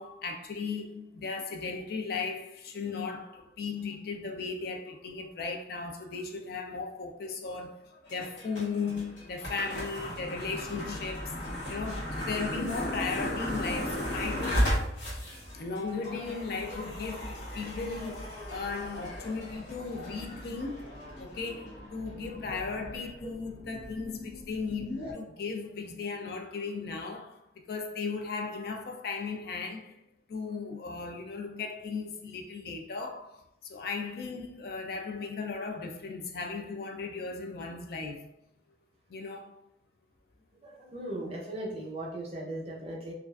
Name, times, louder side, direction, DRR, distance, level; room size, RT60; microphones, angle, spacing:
voice 1, 0.0-11.4 11.7-14.7 15.5-27.4 27.7-30.0 30.3-38.3 39.1-39.6, left 4 dB, 55° left, 0.3 m, -36 dB
sound 1, 8.1-25.1, equal, 90° left, 1.0 m, -36 dB
voice 2, 40.6-43.1, right 1 dB, 30° right, 0.5 m, -38 dB
2.3 x 2.3 x 2.3 m
head